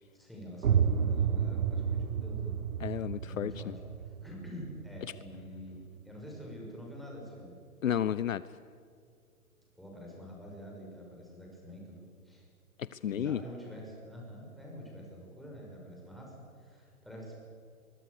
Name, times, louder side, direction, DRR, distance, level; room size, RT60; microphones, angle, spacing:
voice 1, 0.1-2.6 3.2-3.7 4.0-5.8 6.0-7.5 9.8-12.4 13.1-17.4, equal, ahead, -2 dB, 5.8 m, -46 dB
sound 1, 0.6-6.2, right 7 dB, 60° right, 1.5 m, -31 dB
voice 2, 2.8-3.7 7.8-8.4 12.8-13.4, left 10 dB, 65° left, 17 dB, 0.7 m, -32 dB
23.5 x 22.5 x 6.7 m, 2.3 s
figure-of-eight pair, 130°, 44 cm